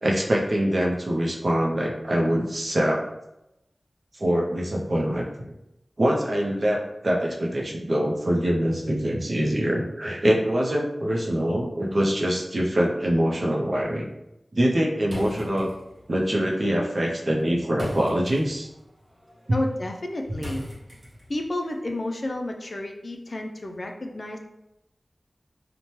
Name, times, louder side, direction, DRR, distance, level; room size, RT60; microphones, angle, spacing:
voice 1, 0.0-3.0 4.2-5.2 6.0-14.1 14.5-15.7 16.1-18.7, equal, 55° right, -1 dB, 0.5 m, -24 dB
sound 1, 15.1-21.5, equal, 35° right, 1.0 m, -41 dB
voice 2, 19.5-20.7 21.3-24.4, left 1 dB, 55° left, 2 dB, 0.4 m, -31 dB
2.8 x 2.1 x 3.0 m, 0.88 s
wide cardioid pair, 65°, 0 cm